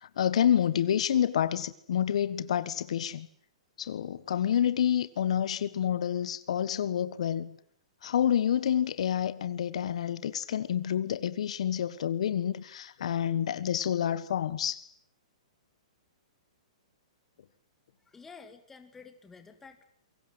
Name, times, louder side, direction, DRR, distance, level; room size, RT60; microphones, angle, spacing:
voice 1, 0.0-3.3 3.8-7.6 8.0-14.9, left 9 dB, 60° left, 1.5 m, -28 dB
voice 2, 18.0-19.8, left 5 dB, 5° left, 2.3 m, -50 dB
28.5 x 24.0 x 8.0 m
hypercardioid pair, 165°, 4 cm